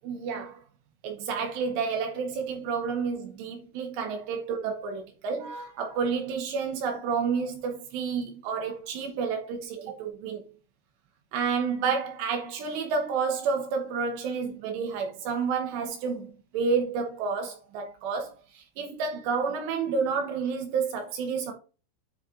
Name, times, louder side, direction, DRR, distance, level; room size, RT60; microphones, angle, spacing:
voice 1, 0.0-0.6 1.0-10.5 11.3-21.5, right 5 dB, 75° right, 2.6 m, -30 dB
10.5 x 4.1 x 2.4 m
omnidirectional pair, 5.8 m